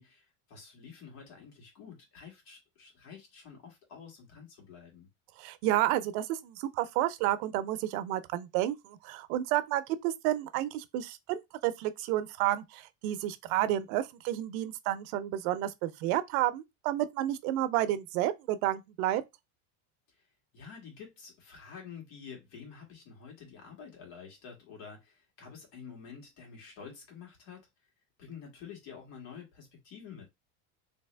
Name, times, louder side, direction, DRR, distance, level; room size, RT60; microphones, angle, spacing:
voice 1, 0.0-5.1 20.5-27.7 28.2-30.3, left 6 dB, 70° left, 2.3 m, -49 dB
voice 2, 5.4-19.2, right 13 dB, 75° right, 0.7 m, -31 dB
3.4 x 2.9 x 3.3 m
supercardioid pair, 130°, 43 cm